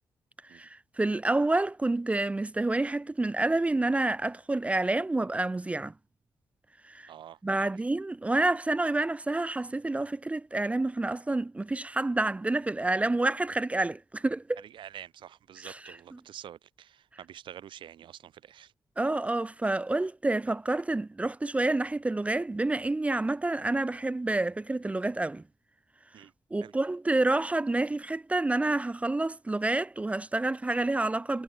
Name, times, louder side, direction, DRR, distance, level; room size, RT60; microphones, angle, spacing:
voice 1, 0.5-5.9 6.9-7.1 7.4-14.6 15.6-16.2 19.0-25.4 26.5-31.4, right 2 dB, 15° right, 0.4 m, -28 dB
voice 2, 7.1-7.4 14.7-18.7 26.1-26.3 26.6-26.7, right 10 dB, 85° right, 1.4 m, -47 dB
cardioid pair, 90°, 8 cm